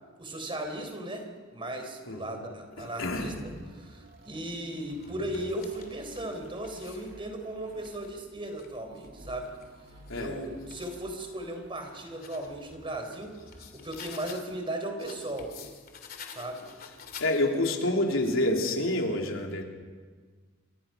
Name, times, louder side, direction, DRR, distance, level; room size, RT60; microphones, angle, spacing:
voice 1, 0.2-3.5 3.8-9.5 10.1-15.5 16.3-16.7, right 1 dB, 25° right, 5 dB, 4.0 m, -37 dB
voice 2, 2.1-2.5 2.8-3.4 10.1-10.4 17.2-19.7, left 1 dB, 80° left, 1 dB, 3.4 m, -28 dB
sound 1, 2.7-3.5 4.2-7.1 7.6-11.0 11.5-14.6 15.0-17.7, left 6 dB, 50° left, 2.7 m, -50 dB
sound 2, 3.1-13.9, right 1 dB, 50° right, 3.4 m, -53 dB
28.5 x 25.0 x 5.8 m, 1.5 s
head